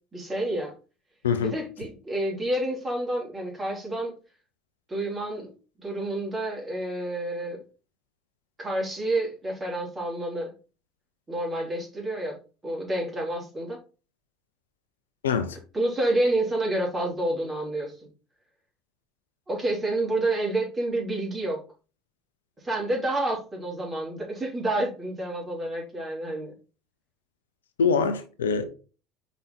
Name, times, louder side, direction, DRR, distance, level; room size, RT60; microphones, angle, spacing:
voice 1, 0.1-0.7 1.4-4.1 4.9-5.5 5.8-7.6 8.6-10.5 11.3-12.4 12.6-13.8 15.7-18.1 19.5-21.6 22.6-26.5, right 1 dB, 20° right, 3.5 m, -29 dB
voice 2, 15.2-15.6 27.8-28.6, left 6 dB, 85° left, 0.7 m, -24 dB
5.5 x 4.1 x 4.1 m
hypercardioid pair, 75°, 0 cm